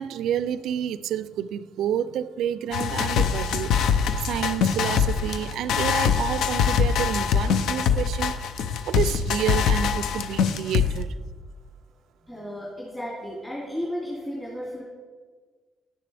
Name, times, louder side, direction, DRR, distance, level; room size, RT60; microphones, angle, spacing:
voice 1, 0.0-8.3 8.9-11.1, right 10 dB, 80° right, 0.3 m, -29 dB
sound 1, 2.7-11.0, left 7 dB, 80° left, 0.6 m, -23 dB
voice 2, 12.3-14.8, equal, 15° left, 2.6 m, -33 dB
10.5 x 9.6 x 3.4 m
cardioid pair, 90°, 0 cm